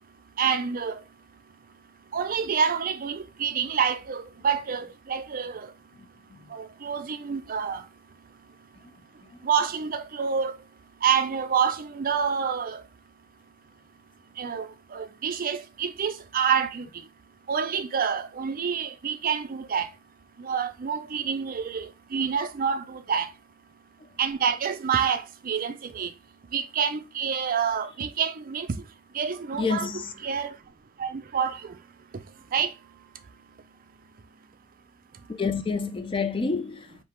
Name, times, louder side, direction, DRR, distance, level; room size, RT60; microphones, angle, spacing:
voice 1, 0.0-12.9 14.3-17.1 17.4-20.0 20.4-23.4 24.1-26.2 26.4-29.9 30.2-30.7 31.0-33.6 35.1-35.3, right 7 dB, 45° right, 0.5 m, -29 dB
voice 2, 29.5-30.1 35.3-37.0, left 4 dB, 25° left, 0.4 m, -29 dB
3.8 x 2.7 x 4.4 m
head